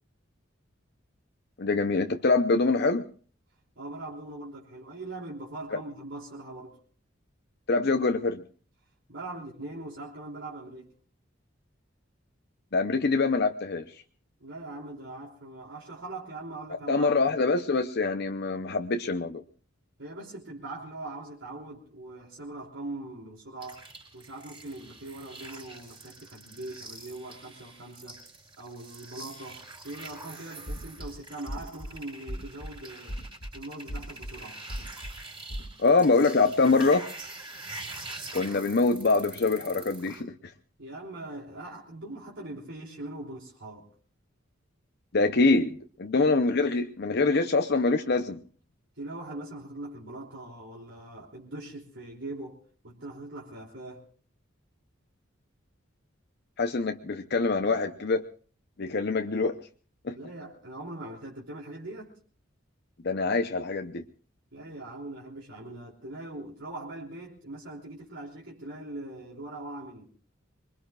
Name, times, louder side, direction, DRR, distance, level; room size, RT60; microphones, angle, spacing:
voice 1, 1.6-3.1 5.7-5.8 7.7-8.4 12.7-13.8 16.9-19.4 35.8-37.1 38.3-40.3 45.1-45.7 46.0-48.4 56.6-58.2 58.8-59.6 60.0-60.2 63.0-64.0, left 3 dB, 55° left, 6 dB, 0.7 m, -24 dB
voice 2, 3.7-6.8 9.1-10.9 14.4-17.1 20.0-23.8 24.1-28.2 28.6-33.2 33.5-34.6 40.8-43.9 49.0-54.0 60.1-62.1 64.5-70.1, right 2 dB, 70° right, -3 dB, 3.4 m, -41 dB
sound 1, 23.6-40.2, right 2 dB, 25° right, 4.6 m, -45 dB
sound 2, 30.7-31.1 31.5-31.9 32.3-32.7 33.1-33.5 33.9-34.3 34.7-35.1 35.5-35.7, equal, 90° left, 2.4 m, -36 dB
25.0 x 22.0 x 2.4 m, 0.41 s
head